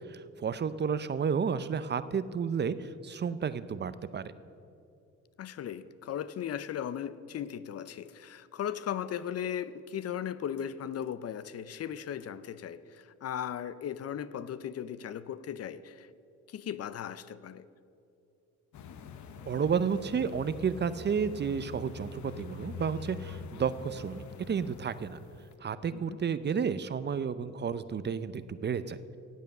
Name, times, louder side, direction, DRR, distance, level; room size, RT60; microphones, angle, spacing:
voice 1, 0.1-4.3 19.5-25.2 25.6-29.0, right 6 dB, 35° right, 0.6 m, -31 dB
voice 2, 5.4-16.1 16.5-17.7 25.9-26.2, left 9 dB, 55° left, 0.6 m, -37 dB
sound 1, 18.7-25.5, left 6 dB, 70° left, 1.0 m, -45 dB
16.0 x 8.3 x 6.5 m
cardioid pair, 90°, 30 cm